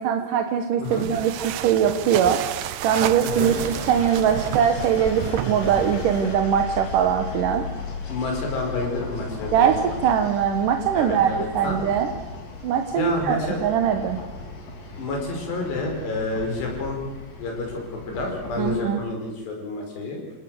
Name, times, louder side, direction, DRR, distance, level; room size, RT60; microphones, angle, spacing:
voice 1, 0.0-2.4 2.8-7.7 9.5-12.1 12.6-14.2 18.6-19.0, right 8 dB, 65° right, 6 dB, 2.3 m, -22 dB
sound 1, 0.8-6.4, right 12 dB, 90° right, 1.8 m, -31 dB
voice 2, 3.2-3.6 8.1-10.0 10.9-11.8 12.9-13.7 15.0-17.0 17.4-20.2, left 2 dB, 75° left, 2 dB, 7.1 m, -29 dB
sound 2, 3.3-18.9, left 4 dB, 50° left, 4.9 m, -36 dB
28.5 x 17.5 x 7.8 m, 1.1 s
omnidirectional pair, 5.0 m